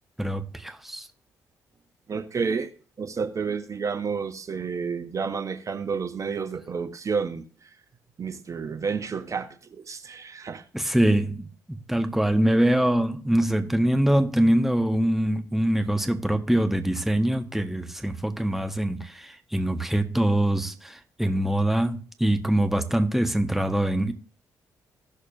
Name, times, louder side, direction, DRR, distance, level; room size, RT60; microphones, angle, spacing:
voice 1, 0.2-1.1 10.7-24.1, right 1 dB, 5° right, 1.2 m, -24 dB
voice 2, 2.1-2.7 3.0-7.7 8.2-10.6, right 5 dB, 40° right, 0.9 m, -30 dB
16.5 x 6.5 x 2.6 m
figure-of-eight pair, 40°, 8 cm